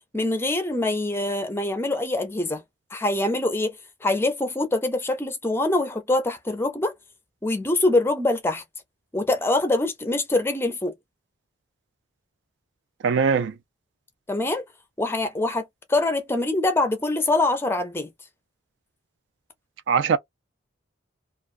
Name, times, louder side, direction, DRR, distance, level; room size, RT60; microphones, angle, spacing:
voice 1, 0.1-2.6 2.9-3.7 4.0-6.9 7.4-8.6 9.1-10.9 14.3-14.6 15.0-18.1, left 2 dB, 10° left, 0.4 m, -24 dB
voice 2, 13.0-13.5 19.9-20.2, right 6 dB, 65° right, 0.3 m, -21 dB
2.4 x 2.2 x 2.4 m
head